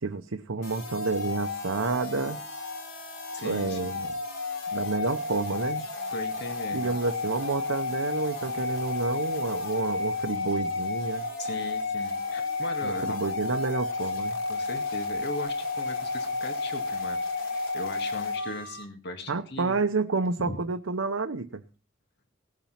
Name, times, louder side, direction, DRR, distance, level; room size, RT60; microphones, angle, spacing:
voice 1, 0.0-2.4 3.4-4.2 4.7-5.9 6.7-11.3 12.8-14.4 19.3-21.6, right 3 dB, 85° right, 5 dB, 0.9 m, -29 dB
sound 1, 0.6-18.8, left 3 dB, 85° left, 3.4 m, -32 dB
voice 2, 3.3-3.9 6.1-6.9 11.4-13.2 14.5-17.2 17.5-19.8 20.4-20.6, left 1 dB, 55° left, 5 dB, 2.1 m, -38 dB
18.5 x 7.3 x 5.8 m, 0.36 s
head